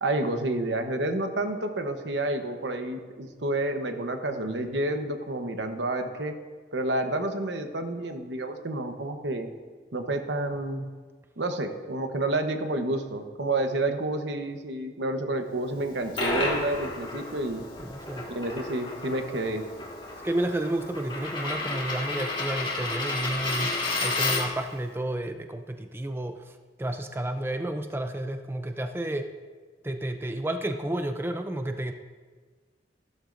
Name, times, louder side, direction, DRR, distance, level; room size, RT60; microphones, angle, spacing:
voice 1, 0.0-6.3 6.7-9.5 9.9-10.9 11.4-17.6 18.3-19.6, right 2 dB, 85° right, 6 dB, 1.0 m, -29 dB
Coin (dropping), 15.8-24.7, left 2 dB, 30° left, 1.7 m, -32 dB
voice 2, 17.8-18.3 20.2-23.8 24.0-29.3 29.8-31.9, right 1 dB, 15° right, 6 dB, 0.4 m, -31 dB
14.5 x 12.0 x 2.6 m, 1.5 s
head